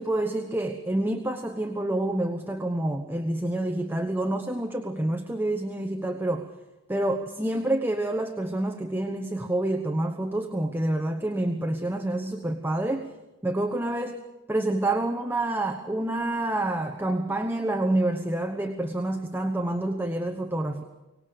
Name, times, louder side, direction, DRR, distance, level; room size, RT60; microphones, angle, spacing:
voice 1, 0.0-6.5 6.9-13.1 13.4-20.8, right 1 dB, 10° right, 5 dB, 1.1 m, -28 dB
24.0 x 19.0 x 6.9 m, 1.1 s
head